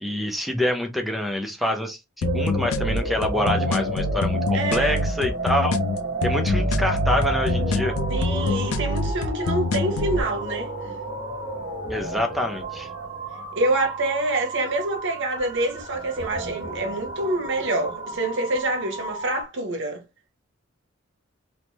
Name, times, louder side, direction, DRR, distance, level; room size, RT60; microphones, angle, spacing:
voice 1, 0.0-5.8 6.2-8.0 11.9-12.9, left 1 dB, ahead, 0.5 m, -26 dB
sound 1, 2.2-10.2, left 3 dB, 90° left, 0.4 m, -26 dB
sound 2, 2.2-19.4, right 3 dB, 20° right, 0.8 m, -32 dB
voice 2, 4.5-5.0 8.1-11.0 13.5-20.0, right 2 dB, 65° right, 0.8 m, -26 dB
sound 3, 6.5-14.2, equal, 60° left, 0.7 m, -33 dB
3.0 x 2.1 x 2.7 m
head